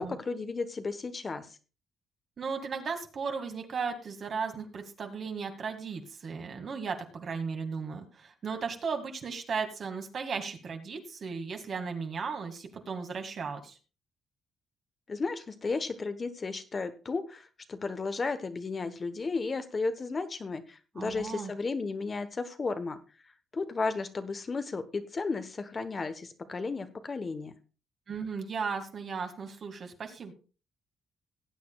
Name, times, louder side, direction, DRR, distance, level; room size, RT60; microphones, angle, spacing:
voice 1, 0.0-1.5 15.1-23.0 23.5-27.5, left 4 dB, 35° left, 9 dB, 1.0 m, -34 dB
voice 2, 2.4-13.8 21.0-21.5 28.1-30.3, right 5 dB, 55° right, 5 dB, 2.0 m, -36 dB
18.5 x 8.4 x 2.3 m, 0.34 s
cardioid pair, 80°, 0 cm